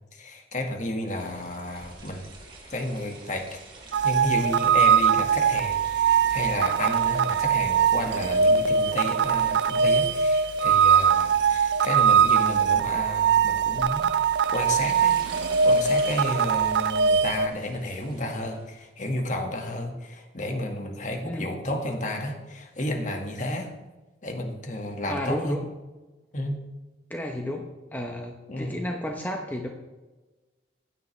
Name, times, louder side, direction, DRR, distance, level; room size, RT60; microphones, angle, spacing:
voice 1, 0.1-2.2 2.7-3.6 4.0-14.1 14.5-15.2 15.6-23.7 24.2-25.6 26.3-26.6 28.5-28.8, left 1 dB, 45° left, 3 dB, 1.8 m, -32 dB
sound 1, 1.1-18.8, right 2 dB, 30° right, 3.2 m, -46 dB
sound 2, 3.9-17.5, right 6 dB, 75° right, 0.4 m, -22 dB
voice 2, 25.1-25.6 27.1-29.7, left 1 dB, 10° left, 2 dB, 0.9 m, -32 dB
16.0 x 10.5 x 3.3 m, 1.1 s
head